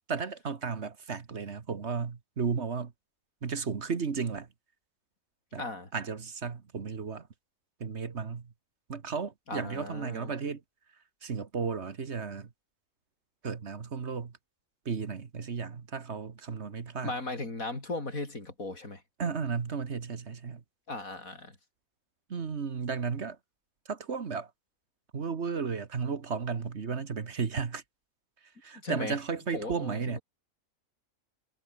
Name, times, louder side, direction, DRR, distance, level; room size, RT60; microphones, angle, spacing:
voice 1, 0.1-2.9 3.4-4.5 5.5-5.6 5.9-7.3 7.8-8.5 8.9-10.6 11.2-12.5 13.4-14.3 14.8-17.1 19.2-20.6 22.3-23.4 23.9-24.5 25.1-27.8 28.6-30.2, right 5 dB, 55° right, 1.7 m, -34 dB
voice 2, 5.6-5.9 9.5-10.3 17.0-19.0 20.9-21.6 28.8-29.2 29.5-30.2, left 2 dB, 90° left, 5.4 m, -37 dB
omnidirectional pair, 1.4 m